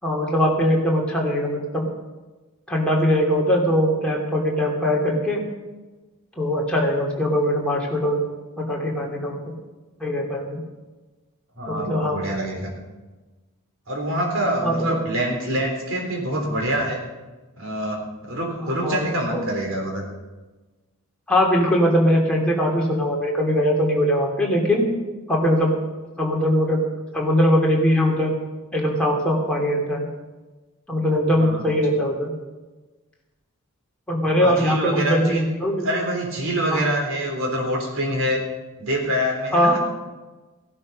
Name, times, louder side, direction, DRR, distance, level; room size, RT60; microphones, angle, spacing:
voice 1, 0.0-1.9 2.7-5.4 6.4-8.2 8.6-9.6 10.0-10.6 11.7-12.2 14.6-15.0 18.6-19.1 19.3-19.4 21.3-24.8 25.3-25.8 26.2-26.8 27.1-28.3 28.7-30.1 30.9-32.3 34.1-35.9 36.7-36.9 39.5-39.8, equal, 5° left, -3 dB, 2.9 m, -21 dB
voice 2, 11.6-12.7 13.9-17.0 17.6-20.0 31.4-31.6 34.4-35.4 35.8-38.4 38.8-39.8, right 1 dB, 60° right, 1 dB, 3.7 m, -25 dB
16.0 x 12.0 x 5.5 m, 1.2 s
head